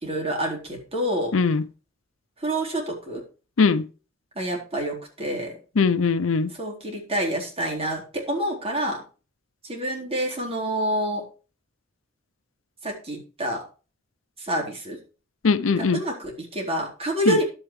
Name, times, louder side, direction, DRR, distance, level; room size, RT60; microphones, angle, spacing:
voice 1, 0.0-1.3 2.4-3.2 4.4-5.5 6.6-9.0 9.6-11.3 12.8-13.6 14.4-15.0 15.8-17.4, right 1 dB, 30° right, 4.1 m, -27 dB
voice 2, 1.3-1.7 3.6-3.9 5.8-6.5 15.4-16.0 17.3-17.4, left 4 dB, 75° left, 0.6 m, -20 dB
11.5 x 9.1 x 3.3 m
head